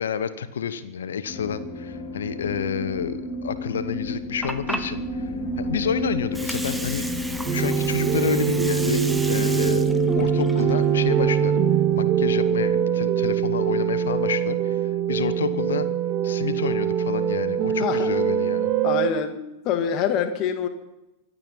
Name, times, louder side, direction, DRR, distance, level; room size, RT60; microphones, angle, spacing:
voice 1, 0.0-7.1 7.5-9.9 10.1-11.6 11.9-15.9 16.2-18.7, left 7 dB, 65° left, 13 dB, 1.1 m, -29 dB
sound 1, 1.3-15.9, left 1 dB, 25° left, 6.2 m, -31 dB
Water, 4.1-12.0, right 1 dB, 5° right, 1.2 m, -36 dB
sound 2, 7.5-19.1, right 9 dB, 35° right, 1.1 m, -23 dB
voice 2, 18.8-19.4 19.6-20.7, left 8 dB, 40° left, 8 dB, 1.9 m, -25 dB
24.5 x 9.1 x 5.5 m, 0.93 s
figure-of-eight pair, 90°, 0 cm